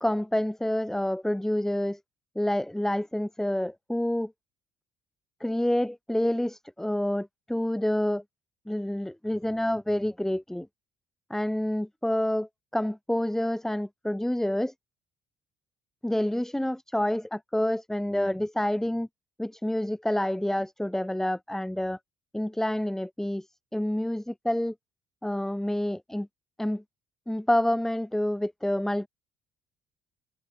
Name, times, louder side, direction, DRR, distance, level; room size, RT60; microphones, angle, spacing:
voice 1, 0.0-2.0 2.4-4.3 5.4-8.2 8.7-10.7 11.3-14.7 16.0-19.1 19.4-22.0 22.3-23.5 23.7-24.7 25.2-26.3 26.6-26.8 27.3-29.1, left 1 dB, ahead, 0.4 m, -28 dB
cardioid pair, 110°, 17 cm